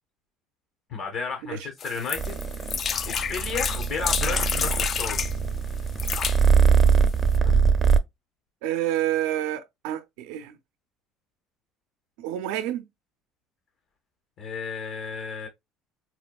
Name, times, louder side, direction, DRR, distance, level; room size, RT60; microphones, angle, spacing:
voice 1, 0.9-2.7 3.1-5.2 7.4-7.7 14.4-15.5, left 5 dB, 60° left, 0.8 m, -33 dB
sound 1, 1.8-5.3 5.9-6.4 7.1-7.2 7.3-7.4, left 7 dB, 45° left, 0.3 m, -29 dB
Purr, 2.2-8.0, right 6 dB, 30° right, 0.5 m, -22 dB
voice 2, 8.6-10.6 12.2-12.9, right 12 dB, 85° right, 0.5 m, -29 dB
4.2 x 2.2 x 2.2 m
supercardioid pair, 95°, 0 cm